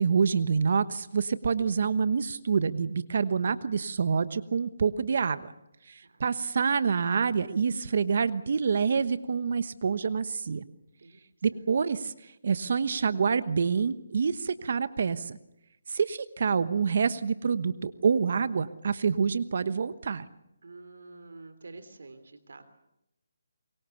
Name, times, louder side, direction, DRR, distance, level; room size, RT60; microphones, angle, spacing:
voice 1, 0.0-5.5 5.9-10.6 11.4-15.4 15.9-20.2, right 6 dB, 55° right, 14 dB, 1.1 m, -27 dB
voice 2, 20.6-22.6, right 3 dB, 75° right, 10 dB, 3.1 m, -48 dB
25.5 x 22.5 x 7.0 m, 0.86 s
hypercardioid pair, 160°, 0 cm